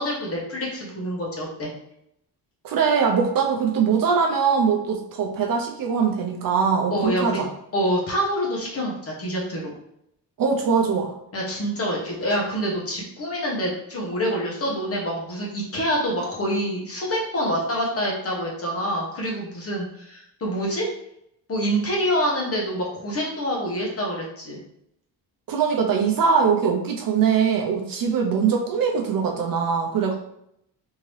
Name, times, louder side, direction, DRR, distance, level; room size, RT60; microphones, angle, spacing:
voice 1, 0.0-1.7 6.9-7.4 7.7-9.7 11.3-20.9 21.5-24.6, equal, 35° left, -2 dB, 1.1 m, -26 dB
voice 2, 2.6-7.5 10.4-11.1 25.5-30.1, right 6 dB, 55° right, 2 dB, 0.6 m, -22 dB
3.6 x 2.8 x 3.1 m, 0.74 s
cardioid pair, 160°, 41 cm